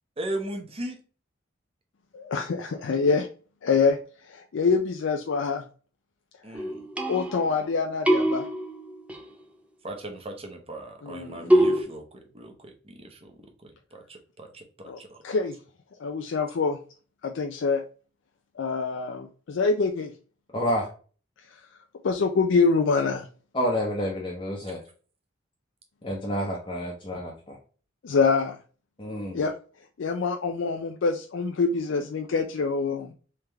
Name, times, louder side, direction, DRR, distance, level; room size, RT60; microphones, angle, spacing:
voice 1, 0.2-1.0 6.4-6.8 9.8-12.0 12.3-12.5 12.9-13.3 13.9-14.6 15.0-15.2, right 1 dB, 30° right, 4 dB, 0.9 m, -37 dB
voice 2, 2.1-3.3 3.6-4.0 4.2-5.6 6.5-6.6 7.1-8.4 11.0-11.6 14.9-15.6 16.0-16.8 17.2-17.8 18.6-20.1 22.0-23.3 28.0-28.6 29.3-29.5 30.0-33.1, left 4 dB, 70° left, 3 dB, 0.4 m, -25 dB
sound 1, 6.5-7.7 8.1-9.3 11.5-11.8, right 1 dB, 5° right, 0.5 m, -23 dB
voice 3, 20.5-20.9 23.5-24.8 26.0-27.6 29.0-29.4, equal, 25° left, -3 dB, 0.8 m, -29 dB
3.5 x 3.2 x 3.3 m, 0.38 s
head